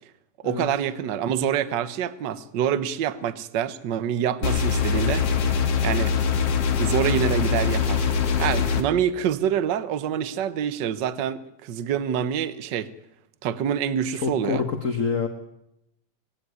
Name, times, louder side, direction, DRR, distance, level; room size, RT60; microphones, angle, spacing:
voice 1, 0.4-6.1 6.8-8.1 8.4-12.9 13.4-14.6, right 9 dB, 65° right, 14 dB, 1.1 m, -26 dB
sound 1, 4.4-8.8, left 6 dB, 55° left, 2.7 m, -23 dB
voice 2, 14.1-15.3, left 5 dB, 40° left, 6 dB, 1.2 m, -26 dB
20.5 x 16.5 x 9.6 m, 0.83 s
omnidirectional pair, 3.3 m